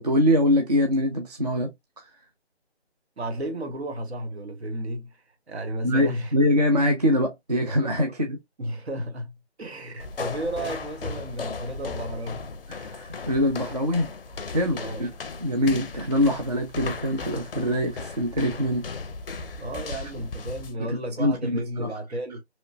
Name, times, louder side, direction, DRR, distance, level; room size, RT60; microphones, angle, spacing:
voice 1, 0.0-1.7 5.8-8.4 12.7-14.1 14.5-15.1 15.4-18.9 19.9-20.0 20.8-21.9, left 1 dB, 40° right, 0.4 m, -24 dB
voice 2, 3.2-5.2 5.5-6.3 8.6-12.5 14.8-15.1 19.6-22.4, right 1 dB, 70° right, 0.9 m, -33 dB
sound 1, 10.0-20.8, left 4 dB, 55° left, 0.4 m, -36 dB
2.9 x 2.1 x 2.6 m
figure-of-eight pair, 170°, 33 cm